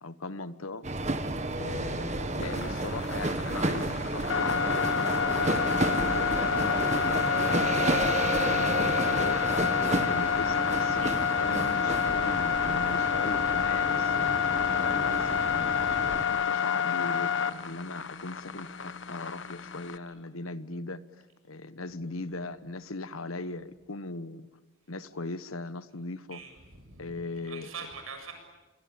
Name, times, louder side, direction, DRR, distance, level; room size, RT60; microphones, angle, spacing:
voice 1, 0.0-0.9 1.6-4.7 5.0-6.8 7.4-9.4 9.9-15.8 16.2-21.0 21.5-24.5 24.9-26.4 27.0-27.7, left 2 dB, 85° left, 14 dB, 1.3 m, -39 dB
sound 1, 0.8-16.2, right 2 dB, 35° right, 1.5 m, -31 dB
sound 2, 1.7-5.7, equal, ahead, 5.0 m, -47 dB
sound 3, 2.4-20.0, left 7 dB, 60° left, 1.2 m, -28 dB
voice 2, 26.3-27.1 27.5-28.3, right 5 dB, 85° right, 5 dB, 7.6 m, -43 dB
26.5 x 24.5 x 8.9 m, 1.1 s
head